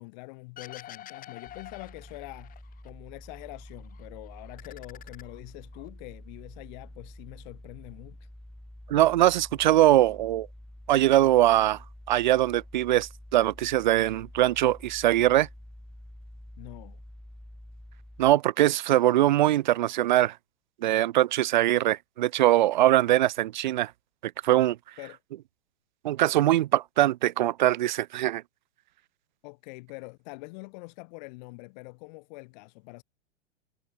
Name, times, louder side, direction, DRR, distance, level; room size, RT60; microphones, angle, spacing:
voice 1, 0.0-2.6 2.8-8.3 16.6-17.0 25.0-25.2 29.4-33.0, left 27 dB, 40° left, 4.4 m, -44 dB
sound 1, 0.6-2.9 3.2-4.1 4.4-5.9, left 12 dB, 25° left, 6.2 m, -47 dB
sound 2, 1.5-18.3, left 1 dB, ahead, 4.4 m, -48 dB
voice 2, 8.9-10.5 10.9-11.8 12.1-15.5 18.2-20.3 20.8-23.9 24.4-24.8 26.0-28.4, right 14 dB, 45° right, 0.5 m, -22 dB
figure-of-eight pair, 105°, 34 cm